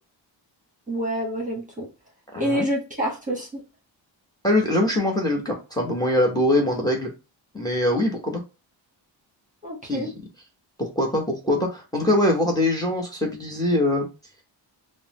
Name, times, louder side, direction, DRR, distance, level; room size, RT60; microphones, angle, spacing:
voice 1, 0.9-1.9 2.4-3.6 9.6-10.1, equal, 15° right, -2 dB, 1.1 m, -27 dB
voice 2, 2.3-2.7 4.4-7.1 7.5-8.4 9.8-10.1 10.8-14.1, left 1 dB, 10° left, 2 dB, 0.9 m, -23 dB
3.7 x 2.0 x 2.9 m, 0.29 s
cardioid pair, 80°, 47 cm